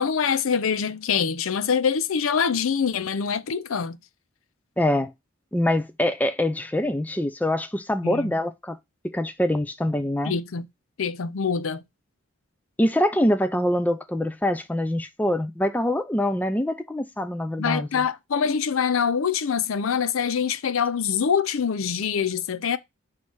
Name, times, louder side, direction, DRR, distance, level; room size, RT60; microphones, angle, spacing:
voice 1, 0.0-4.0 8.0-8.3 10.2-10.7 11.0-11.8 17.6-22.8, left 6 dB, 85° left, 0.5 m, -24 dB
voice 2, 4.8-5.1 5.5-8.8 9.0-10.3 12.8-18.1, left 1 dB, 10° left, 0.4 m, -24 dB
6.3 x 3.2 x 5.5 m
head